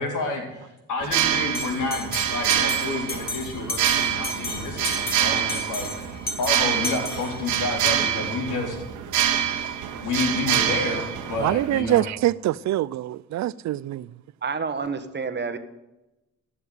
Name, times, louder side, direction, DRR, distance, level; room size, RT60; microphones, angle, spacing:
voice 1, 0.0-8.8 10.0-12.0, left 3 dB, 80° left, 4.2 m, -29 dB
sound 1, 1.0-11.8, right 10 dB, 85° right, 1.3 m, -26 dB
Bell, 1.5-7.8, left 2 dB, 30° left, 2.5 m, -34 dB
voice 2, 11.4-14.1, right 14 dB, 65° right, 0.5 m, -24 dB
voice 3, 14.4-15.6, right 5 dB, 35° right, 1.4 m, -28 dB
15.0 x 7.0 x 7.9 m
cardioid pair, 90°, 30 cm